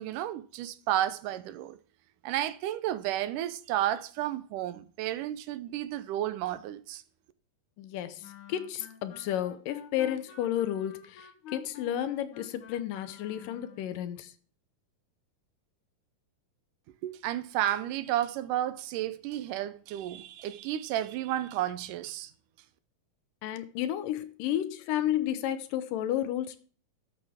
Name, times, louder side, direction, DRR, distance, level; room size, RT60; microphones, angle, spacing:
voice 1, 0.0-1.8 2.2-7.0 17.0-22.3, right 12 dB, 80° right, 2.2 m, -32 dB
voice 2, 7.8-14.3 23.4-26.6, left 11 dB, 85° left, 2.5 m, -32 dB
Wind instrument woodwind instrument, 8.2-14.0, left 7 dB, 65° left, 2.7 m, -49 dB
12.5 x 8.2 x 3.6 m
omnidirectional pair, 3.8 m